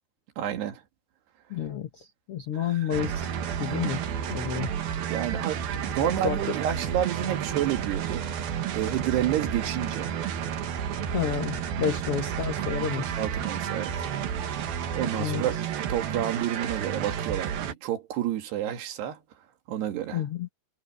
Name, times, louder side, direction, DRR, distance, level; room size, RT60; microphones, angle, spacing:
voice 1, 0.4-0.8 2.5-3.0 5.1-10.2 12.1-12.2 12.8-13.9 15.0-19.2 19.7-20.2, right 11 dB, 85° right, 4.1 m, -30 dB
voice 2, 1.5-3.3 3.6-4.0 4.3-4.7 6.2-6.6 11.1-13.1 15.2-15.4 20.1-20.5, left 8 dB, 90° left, 1.2 m, -30 dB
sound 1, 2.9-17.7, right 8 dB, 70° right, 3.4 m, -31 dB
omnidirectional pair, 4.6 m